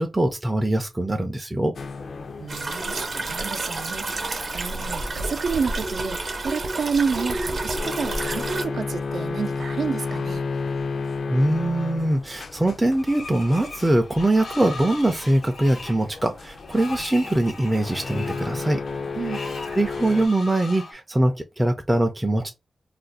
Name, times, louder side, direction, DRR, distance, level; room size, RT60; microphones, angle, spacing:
voice 1, 0.0-1.7 11.3-18.8 19.8-22.5, right 1 dB, 15° right, 0.4 m, -22 dB
sound 1, 1.8-20.3, left 4 dB, 65° left, 0.4 m, -34 dB
voice 2, 2.4-10.4 19.2-19.4, right 5 dB, 85° right, 0.5 m, -29 dB
sound 2, 2.5-8.6, right 2 dB, 50° right, 0.7 m, -30 dB
Screech, 13.0-20.9, left 3 dB, 85° left, 1.0 m, -39 dB
2.5 x 2.1 x 4.0 m
wide cardioid pair, 120°, 0 cm